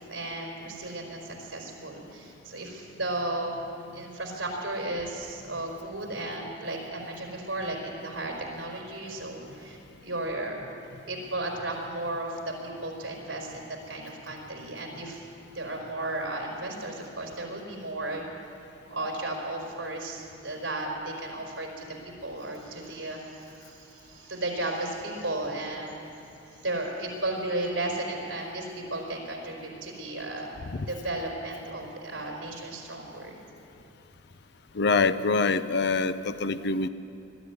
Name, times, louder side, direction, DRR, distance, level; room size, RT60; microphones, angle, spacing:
voice 1, 0.1-3.5 3.9-10.6 11.1-15.2 15.5-18.4 18.9-21.9 22.2-26.2 26.5-30.5 30.9-33.4, right 2 dB, 65° right, 0 dB, 4.6 m, -34 dB
voice 2, 34.7-36.9, left 4 dB, 55° left, 12 dB, 0.6 m, -25 dB
21.5 x 13.0 x 9.6 m, 2.7 s
head